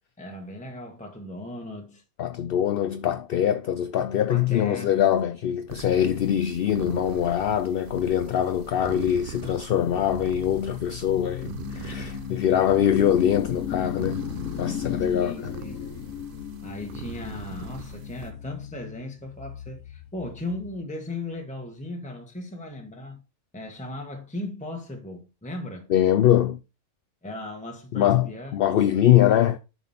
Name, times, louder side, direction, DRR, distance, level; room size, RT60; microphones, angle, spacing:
voice 1, 0.2-2.0 4.3-5.1 15.1-15.8 16.6-23.2 23.5-25.9 27.2-29.0, left 2 dB, 5° left, 1.3 m, -37 dB
voice 2, 2.2-14.2 14.6-15.5 25.9-26.6 27.9-29.6, left 10 dB, 60° left, 0.7 m, -23 dB
sound 1, 5.7-18.3, right 8 dB, 55° right, 0.7 m, -42 dB
sound 2, 7.0-20.8, left 9 dB, 85° left, 1.1 m, -37 dB
7.2 x 5.8 x 4.2 m
omnidirectional pair, 1.3 m